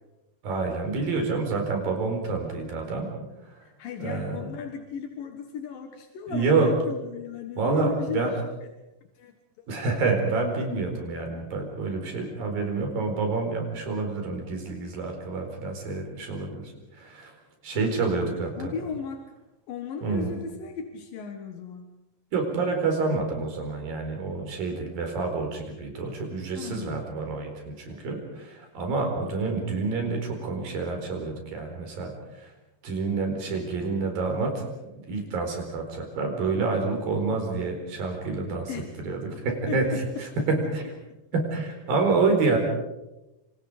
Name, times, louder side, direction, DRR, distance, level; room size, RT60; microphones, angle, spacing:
voice 1, 0.4-3.1 3.4-3.6 4.0-4.4 6.3-6.7 7.6-8.3 9.7-17.3 17.6-18.7 20.0-20.3 22.3-32.1 32.4-32.5 32.8-38.7 39.0-40.8 41.3-42.6, right 4 dB, 85° right, 3 dB, 6.2 m, -28 dB
voice 2, 3.6-8.7 9.2-9.3 9.6-9.7 17.7-19.2 19.7-21.9 26.5-27.0 38.7-39.0 39.7-40.5 41.1-41.2, left 6 dB, 80° left, 5 dB, 3.2 m, -36 dB
27.0 x 26.5 x 5.1 m, 0.99 s
omnidirectional pair, 4.0 m